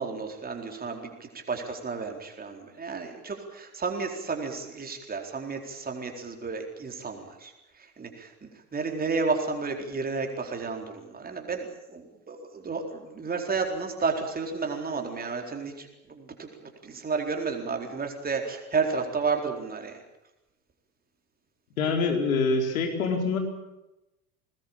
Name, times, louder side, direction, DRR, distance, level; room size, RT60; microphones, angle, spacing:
voice 1, 0.0-20.0, right 4 dB, 20° right, 3 dB, 4.3 m, -32 dB
voice 2, 21.8-23.4, left 4 dB, 65° left, 3 dB, 4.5 m, -25 dB
22.0 x 20.0 x 8.8 m, 0.95 s
figure-of-eight pair, 75°, 44 cm